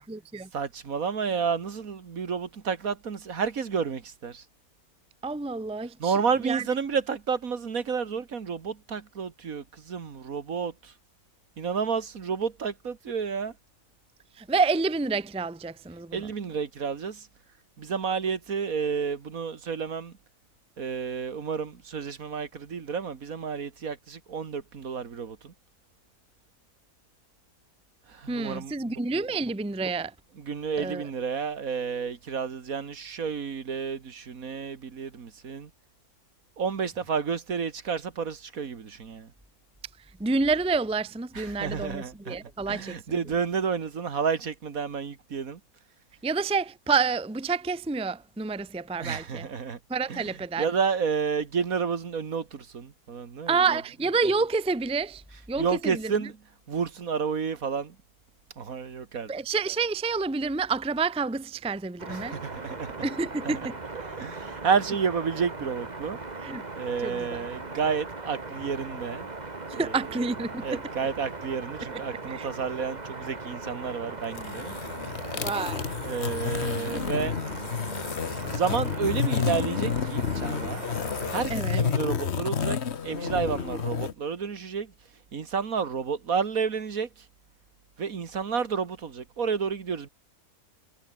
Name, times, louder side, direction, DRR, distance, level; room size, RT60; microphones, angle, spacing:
voice 1, 0.0-0.5 5.2-6.7 14.4-16.3 28.3-30.1 30.8-31.1 40.2-42.9 46.2-49.5 49.9-50.7 53.5-55.2 55.5-56.3 59.3-62.4 63.0-63.8 66.4-66.6 67.0-67.4 69.7-70.8 72.3-72.5 75.3-75.9 81.5-81.8, right 4 dB, 5° right, 0.7 m, -28 dB
voice 2, 0.5-4.4 6.0-10.9 11.6-13.5 16.1-17.3 17.8-20.1 20.8-25.5 28.1-29.0 30.5-35.7 36.6-39.3 41.4-42.4 42.7-45.6 49.0-49.8 50.1-50.2 50.6-53.6 55.6-56.3 56.7-58.0 58.6-59.3 62.1-63.1 63.5-63.6 64.0-66.2 66.8-69.3 69.8-70.3 70.6-74.7 76.0-77.4 78.4-80.8 81.3-84.9 85.3-87.1 88.0-90.1, right 6 dB, 65° right, 2.1 m, -30 dB
sound 1, 62.0-81.4, right 3 dB, 30° right, 2.1 m, -39 dB
sound 2, 74.2-84.1, left 7 dB, 50° left, 1.4 m, -30 dB
omnidirectional pair, 1.6 m